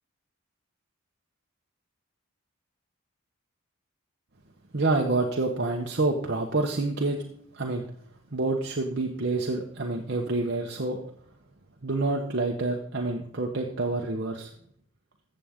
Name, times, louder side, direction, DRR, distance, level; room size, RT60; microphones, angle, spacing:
voice 1, 4.7-7.2 7.5-7.8 8.3-11.0 11.8-14.5, right 2 dB, 50° right, 1 dB, 1.0 m, -27 dB
14.0 x 7.7 x 3.6 m, 0.65 s
head